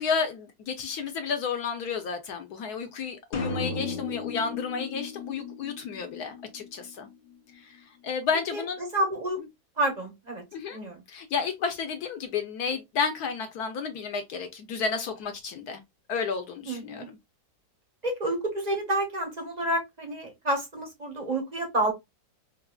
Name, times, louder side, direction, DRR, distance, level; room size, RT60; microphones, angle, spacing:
voice 1, 0.0-7.1 7.6-7.7 8.0-8.8 10.5-10.8 11.1-15.8 16.1-17.1, left 5 dB, 70° left, 1.0 m, -31 dB
sound 1, 3.3-7.1, left 4 dB, 85° left, 0.5 m, -35 dB
voice 2, 8.5-9.4 9.8-10.4 10.7-11.0 16.7-17.1 18.0-21.9, right 1 dB, 40° right, 0.6 m, -29 dB
4.7 x 2.4 x 2.2 m
omnidirectional pair, 2.1 m